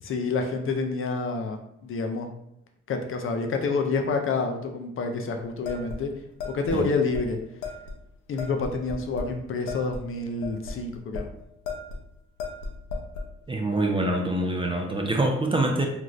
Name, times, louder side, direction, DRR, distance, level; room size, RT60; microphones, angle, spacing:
voice 1, 0.0-2.3 2.9-6.1 6.5-7.4 8.3-11.3, left 4 dB, 45° left, 4 dB, 0.4 m, -28 dB
sound 1, 5.7-6.8 7.1-7.2 7.6-8.0 8.4-9.4 9.7-11.3 11.7-12.0 12.4-13.3, left 4 dB, 90° left, 0.6 m, -35 dB
voice 2, 13.5-15.9, right 2 dB, 20° right, 2 dB, 0.4 m, -25 dB
2.6 x 2.4 x 3.1 m, 0.79 s
cardioid pair, 90°, 30 cm